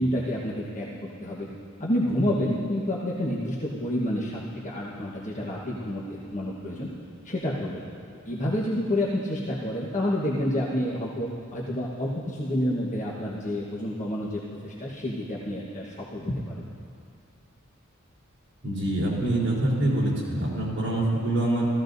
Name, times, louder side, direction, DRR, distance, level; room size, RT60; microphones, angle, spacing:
voice 1, 0.0-1.5 1.8-6.9 7.2-7.8 8.2-16.7, left 1 dB, 35° left, -6 dB, 1.2 m, -29 dB
voice 2, 18.6-21.7, right 1 dB, 60° right, -8 dB, 3.8 m, -25 dB
18.0 x 14.5 x 2.7 m, 2.4 s
head